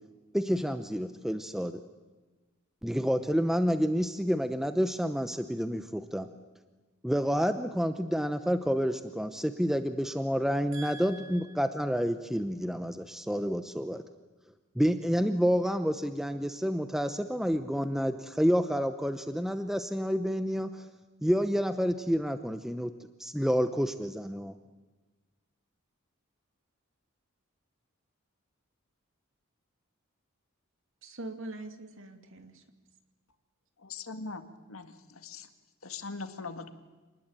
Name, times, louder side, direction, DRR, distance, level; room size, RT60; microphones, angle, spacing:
voice 1, 0.3-1.8 2.8-6.3 7.0-14.0 14.8-20.7 21.2-22.9 23.2-24.6, equal, ahead, 9 dB, 0.8 m, -29 dB
voice 2, 10.7-11.6 31.0-32.6, right 2 dB, 65° right, 6 dB, 2.6 m, -43 dB
voice 3, 33.8-35.5 35.8-36.7, left 4 dB, 75° left, 8 dB, 2.1 m, -41 dB
27.5 x 19.5 x 8.9 m, 1.3 s
head